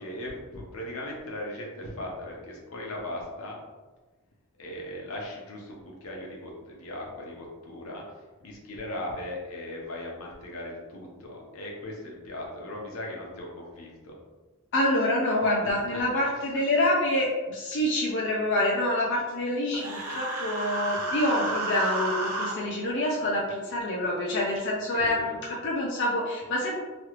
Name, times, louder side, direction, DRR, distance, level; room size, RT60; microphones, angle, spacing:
voice 1, 0.0-3.6 4.6-8.0 8.4-14.2 15.6-16.0 24.9-25.3, left 1 dB, 80° left, -2 dB, 0.8 m, -38 dB
voice 2, 14.7-26.7, left 1 dB, 55° left, -3 dB, 0.4 m, -26 dB
Human voice, 19.7-22.5, right 2 dB, 90° right, 0.7 m, -31 dB
3.0 x 2.4 x 3.0 m, 1.3 s
head